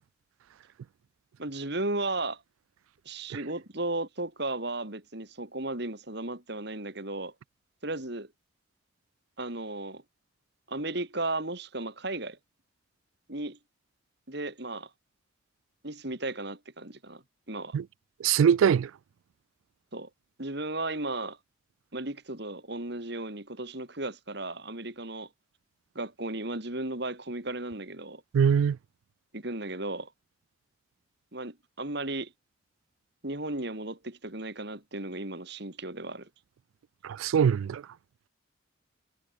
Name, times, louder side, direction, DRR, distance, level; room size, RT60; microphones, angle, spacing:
voice 1, 1.4-2.4 3.0-7.3 7.8-8.3 9.4-10.0 10.7-12.4 13.3-13.6 14.3-14.9 15.8-17.2 17.5-17.8 19.9-20.1 20.4-21.4 21.9-25.3 25.9-28.2 29.3-30.1 31.3-32.3 33.2-36.3, right 2 dB, 55° right, 2.9 m, -35 dB
voice 2, 18.2-18.9 28.3-28.8 37.0-37.8, right 7 dB, 75° right, 0.3 m, -22 dB
head